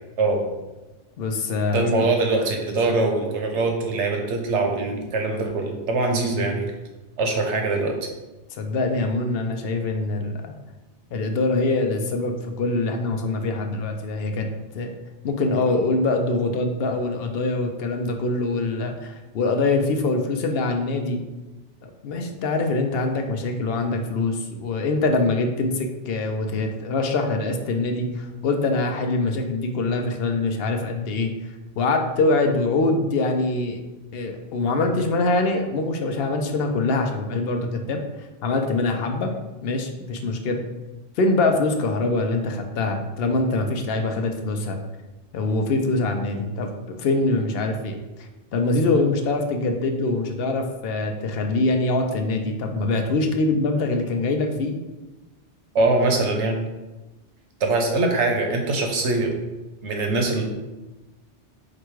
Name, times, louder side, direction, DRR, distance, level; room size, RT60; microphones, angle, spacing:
voice 1, 0.2-0.5 1.7-6.7 7.2-8.0 55.7-56.7 57.6-59.4 59.8-60.4, right 3 dB, 75° right, 2 dB, 1.1 m, -23 dB
voice 2, 1.2-2.1 8.6-10.5 11.1-14.5 14.7-15.0 15.2-21.2 22.0-31.3 31.8-33.8 34.1-38.0 38.4-39.3 39.6-40.6 41.2-44.8 45.3-48.0 48.5-54.7, left 2 dB, 65° left, 4 dB, 0.8 m, -24 dB
5.0 x 2.3 x 4.5 m, 1.1 s
omnidirectional pair, 1.2 m